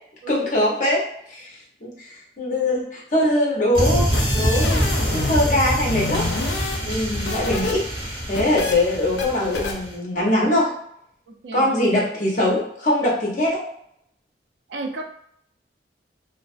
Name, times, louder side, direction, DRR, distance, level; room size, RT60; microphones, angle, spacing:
voice 1, 0.3-1.5 1.8-4.8 5.1-6.3 6.9-7.8 8.3-10.7 11.5-13.7, left 1 dB, 45° left, -3 dB, 0.7 m, -22 dB
sound 1, 3.7-9.9, equal, 35° right, 0.8 m, -25 dB
sound 2, 4.1-5.5 5.8-7.7 8.0-8.7 9.2-9.3 9.5-9.7, left 3 dB, 90° left, 0.4 m, -29 dB
voice 2, 14.7-15.0, right 3 dB, 85° right, 4 dB, 0.4 m, -32 dB
2.4 x 2.3 x 2.4 m, 0.72 s
head